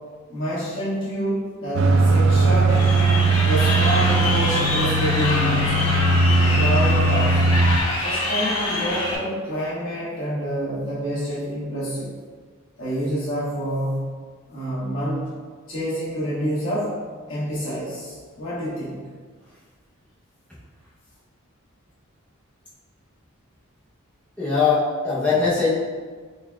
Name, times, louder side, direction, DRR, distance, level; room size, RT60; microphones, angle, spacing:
voice 1, 0.3-2.7 3.5-5.9 6.4-7.4 8.0-12.1 12.8-14.1 14.5-15.3 15.7-17.0 17.3-19.0, equal, 60° left, -9 dB, 1.4 m, -27 dB
sound 1, 1.7-7.8, right 2 dB, 60° right, 0.3 m, -19 dB
Crowd, 2.7-9.1, left 2 dB, 85° left, 0.7 m, -25 dB
voice 2, 24.4-25.7, left 4 dB, 5° left, -11 dB, 0.7 m, -21 dB
3.9 x 3.4 x 2.3 m, 1.5 s
head